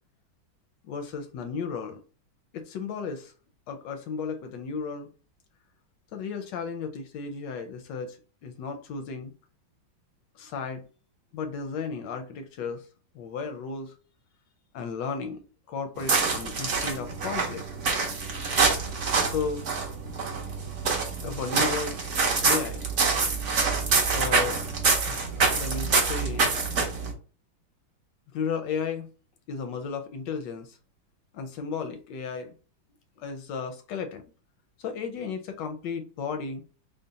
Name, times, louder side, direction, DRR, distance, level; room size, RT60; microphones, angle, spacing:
voice 1, 0.8-2.0 2.5-3.3 3.7-5.1 6.1-9.3 10.4-10.8 11.3-12.8 13.1-13.9 14.7-17.6 19.2-19.7 21.2-22.0 22.4-22.9 24.1-24.6 25.0-26.6 28.3-29.1 29.5-30.8 31.3-32.5 33.2-34.2 34.8-36.6, left 5 dB, 75° left, 1.1 m, -34 dB
sound 1, 16.0-27.1, right 4 dB, 55° right, 0.9 m, -26 dB
3.8 x 2.0 x 3.9 m
omnidirectional pair, 2.3 m